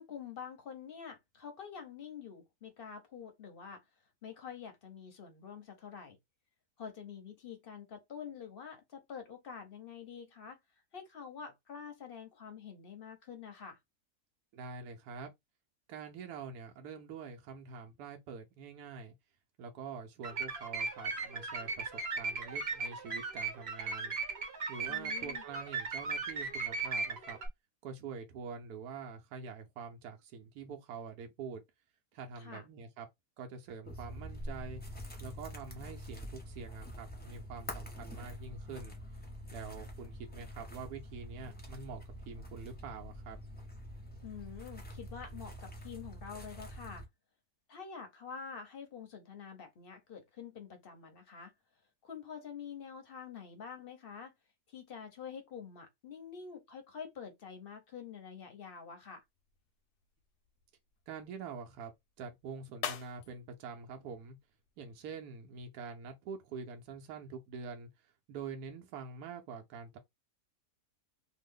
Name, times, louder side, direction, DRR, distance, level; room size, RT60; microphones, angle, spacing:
voice 1, 0.0-3.8 4.2-6.2 6.8-10.6 10.9-13.8 24.9-25.4 32.4-32.6 44.2-47.0 47.7-51.5 52.0-54.3 54.7-59.2, left 7 dB, 50° left, 0.7 m, -47 dB
voice 2, 14.5-15.3 15.9-19.1 19.6-24.1 24.7-27.4 27.8-31.6 32.1-33.1 33.4-34.8 35.2-39.0 39.5-43.4 61.1-61.9 62.2-64.4 64.8-70.0, right 5 dB, 80° right, 1.1 m, -45 dB
sound 1, 20.2-27.5, right 4 dB, 45° right, 1.1 m, -37 dB
sound 2, 33.8-47.1, equal, 10° left, 0.5 m, -46 dB
sound 3, 59.2-65.1, left 10 dB, 85° left, 1.1 m, -48 dB
3.0 x 2.0 x 3.4 m
omnidirectional pair, 1.7 m